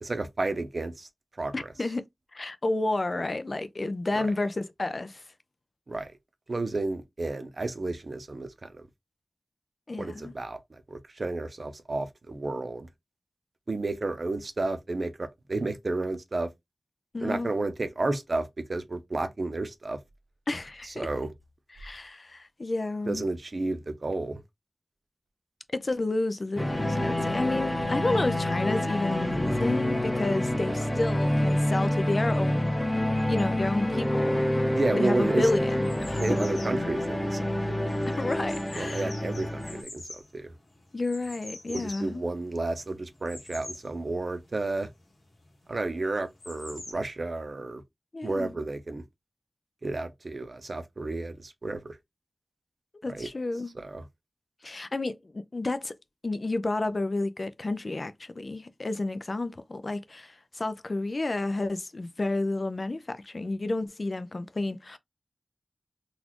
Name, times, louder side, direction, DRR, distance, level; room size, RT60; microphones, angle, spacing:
voice 1, 0.0-1.1 1.4-1.5 4.2-4.3 5.9-6.1 6.5-8.9 10.0-10.6 10.9-12.9 13.7-16.5 17.2-20.0 21.0-21.3 23.1-24.4 30.9-31.0 34.7-35.5 36.2-37.9 38.8-40.5 41.7-44.9 45.7-47.8 48.2-49.0 49.8-52.0 53.1-53.3 53.8-54.0, right 2 dB, 50° right, 0.7 m, -32 dB
voice 2, 1.5-2.1 2.3-5.2 9.9-10.3 17.1-17.5 20.5-21.1 21.7-23.2 25.7-34.5 34.9-36.2 38.1-39.1 40.9-42.2 48.1-48.5 53.0-53.7 54.6-55.9 56.2-65.0, left 2 dB, 45° left, 0.4 m, -31 dB
sound 1, 26.6-39.8, left 1 dB, 15° left, 0.8 m, -27 dB
sound 2, 35.5-46.9, left 2 dB, 65° left, 1.7 m, -47 dB
4.0 x 2.4 x 2.9 m
wide cardioid pair, 90°, 0 cm